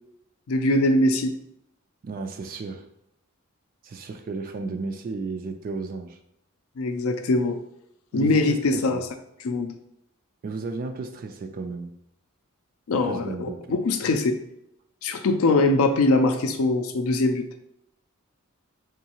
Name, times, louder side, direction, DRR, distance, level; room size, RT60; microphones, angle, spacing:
voice 1, 0.5-1.3 6.8-7.6 8.1-9.0 9.4-9.7 12.9-14.4 15.0-17.4, left 2 dB, 70° left, 7 dB, 0.4 m, -22 dB
voice 2, 2.0-2.9 3.8-6.2 8.1-9.0 10.4-11.9 13.0-13.6, right 3 dB, 40° right, 7 dB, 0.3 m, -33 dB
3.6 x 3.1 x 2.9 m, 0.76 s
head